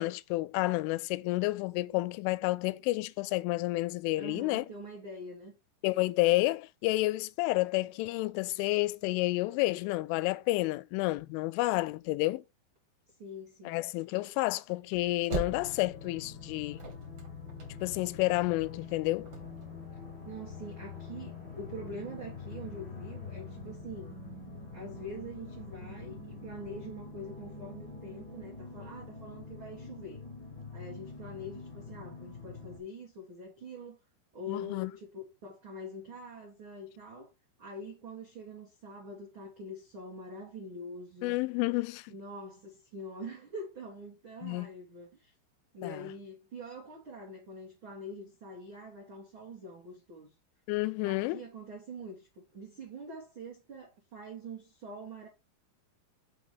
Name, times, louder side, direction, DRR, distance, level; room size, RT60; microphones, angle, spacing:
voice 1, 0.0-4.7 5.8-12.4 13.7-16.8 17.8-19.3 34.5-34.9 41.2-42.1 44.4-44.7 45.8-46.0 50.7-51.4, left 20 dB, 90° left, 3.0 m, -30 dB
voice 2, 4.2-5.5 13.2-13.8 20.2-24.2 24.7-30.2 30.7-34.0 34.3-37.3 37.6-41.3 42.1-45.3 45.7-50.3 51.0-55.3, equal, 75° right, 1.1 m, -44 dB
sound 1, 14.8-16.2 16.5-18.1 18.3-18.4 18.6-18.7 19.2-19.7, right 3 dB, 40° right, 2.6 m, -39 dB
sound 2, 15.5-32.8, left 4 dB, 50° left, 1.2 m, -45 dB
6.0 x 4.7 x 5.0 m
omnidirectional pair, 5.5 m